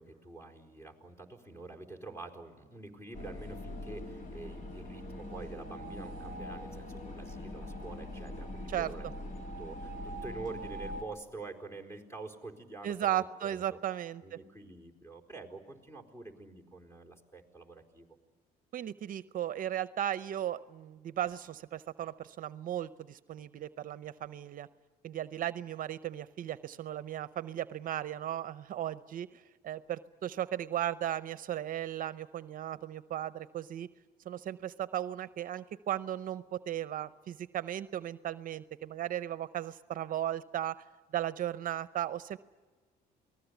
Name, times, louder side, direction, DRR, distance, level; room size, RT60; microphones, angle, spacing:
voice 1, 0.0-9.3 9.6-13.8 14.2-18.2, right 3 dB, 15° left, 3 dB, 4.4 m, -47 dB
sound 1, 3.1-11.0, left 1 dB, 50° left, 3.2 m, -42 dB
voice 2, 12.8-14.2 18.7-24.7 25.0-33.9 34.3-40.8 41.1-42.4, right 11 dB, 55° right, 14 dB, 0.7 m, -36 dB
29.0 x 19.5 x 8.2 m, 1.4 s
cardioid pair, 110°, 17 cm